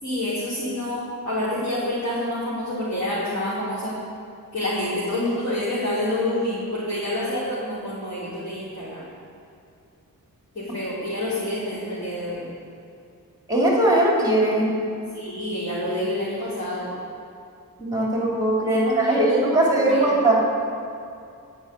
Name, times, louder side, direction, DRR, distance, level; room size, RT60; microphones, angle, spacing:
voice 1, 0.0-4.0 4.5-9.0 10.5-12.4 15.1-16.9 18.6-20.2, left 1 dB, 40° left, -11 dB, 4.4 m, -28 dB
voice 2, 13.5-14.7 17.8-20.4, right 1 dB, 10° right, -4 dB, 3.1 m, -20 dB
18.5 x 6.4 x 9.1 m, 2.5 s
wide cardioid pair, 150°, 34 cm